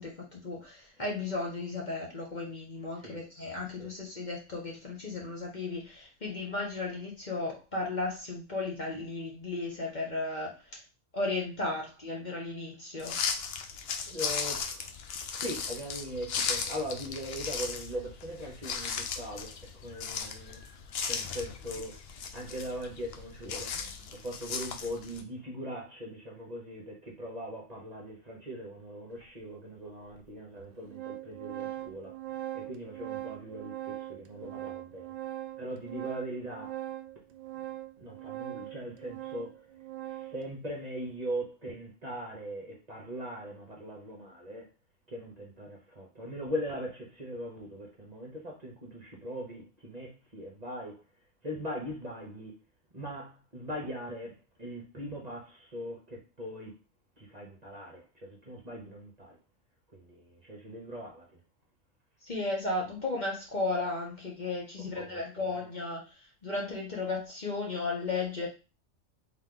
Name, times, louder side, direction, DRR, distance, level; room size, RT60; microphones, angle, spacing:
voice 1, 0.0-10.8 11.1-13.2 62.2-66.1 66.4-68.5, left 3 dB, 40° left, 1.1 m, -35 dB
sound 1, 13.0-25.2, left 6 dB, 60° left, 0.8 m, -36 dB
voice 2, 14.1-14.9 15.3-20.6 21.0-22.0 22.3-32.2 32.5-35.1 35.6-36.8 38.0-39.6 40.0-44.7 45.1-51.0 51.4-52.6 52.9-56.8 57.2-59.4 59.9-61.4 64.8-65.7, equal, 35° right, 1.1 m, -40 dB
Organ, 29.2-29.3 30.2-30.3 30.6-40.5, right 13 dB, 75° right, 0.9 m, -41 dB
3.8 x 3.2 x 3.8 m
omnidirectional pair, 1.3 m